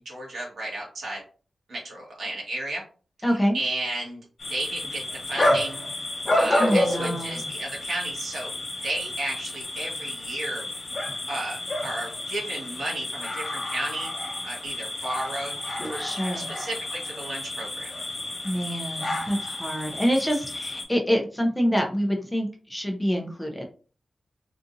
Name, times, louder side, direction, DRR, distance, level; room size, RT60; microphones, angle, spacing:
voice 1, 0.0-1.2 1.7-2.8 3.5-4.2 4.5-5.0 5.3-5.9 6.4-8.5 8.8-10.6 11.3-14.1 14.4-16.0 16.3-17.9, right 2 dB, 75° right, -3 dB, 1.5 m, -33 dB
voice 2, 3.2-3.6 6.6-7.5 16.0-16.5 18.4-23.7, equal, 5° left, 1 dB, 0.5 m, -26 dB
sound 1, 4.4-20.8, left 1 dB, 45° left, 1.1 m, -30 dB
3.7 x 2.4 x 2.6 m, 0.39 s
wide cardioid pair, 170°, 0 cm